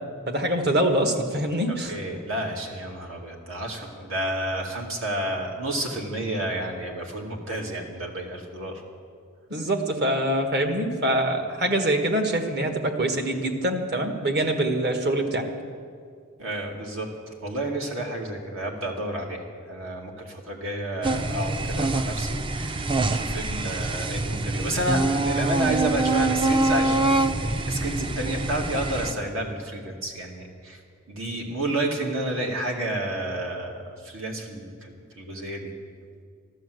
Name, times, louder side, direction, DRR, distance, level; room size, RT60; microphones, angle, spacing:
voice 1, 0.3-2.0 9.5-15.5, right 1 dB, 55° right, 4 dB, 1.7 m, -24 dB
voice 2, 1.9-8.8 16.4-17.1 17.4-30.8 31.1-35.7, right 1 dB, 75° right, 0 dB, 2.4 m, -30 dB
sound 1, 21.0-29.1, right 2 dB, 25° right, 0.4 m, -25 dB
14.0 x 12.5 x 7.9 m, 2.2 s
head